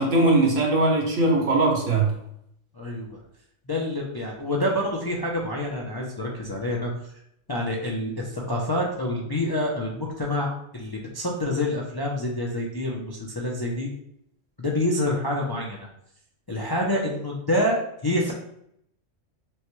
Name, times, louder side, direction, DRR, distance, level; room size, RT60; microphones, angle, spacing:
voice 1, 0.0-2.1, right 2 dB, 90° right, -1 dB, 1.4 m, -20 dB
voice 2, 2.7-3.2 3.7-6.9 7.5-13.9 14.6-15.9 16.5-18.3, left 1 dB, 35° left, -2 dB, 0.3 m, -27 dB
6.2 x 2.2 x 3.1 m, 0.75 s
omnidirectional pair, 1.3 m